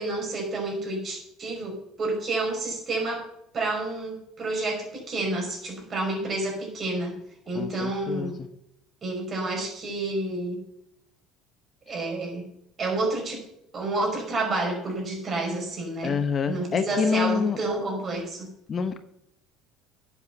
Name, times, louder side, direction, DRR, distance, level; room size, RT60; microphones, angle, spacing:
voice 1, 0.0-3.3 3.5-7.1 7.5-8.3 9.0-10.6 11.9-12.4 12.8-13.4 13.7-16.2 16.5-18.5, right 2 dB, 30° right, 2 dB, 5.3 m, -29 dB
voice 2, 7.5-8.5 16.0-17.6 18.7-19.0, left 6 dB, 30° left, 9 dB, 0.9 m, -27 dB
10.5 x 8.7 x 6.7 m, 0.78 s
cardioid pair, 120°, 0 cm